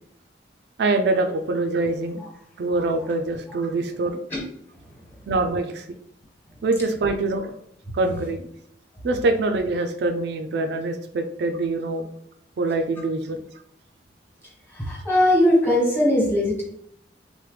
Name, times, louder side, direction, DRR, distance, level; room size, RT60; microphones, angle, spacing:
voice 1, 0.8-2.2 2.6-4.2 5.3-5.9 6.6-7.5 7.9-8.5 9.0-12.1 12.6-13.4, right 2 dB, 65° right, 6 dB, 0.4 m, -24 dB
voice 2, 14.7-16.6, left 1 dB, 15° left, -5 dB, 1.3 m, -19 dB
4.6 x 2.1 x 3.2 m, 0.70 s
head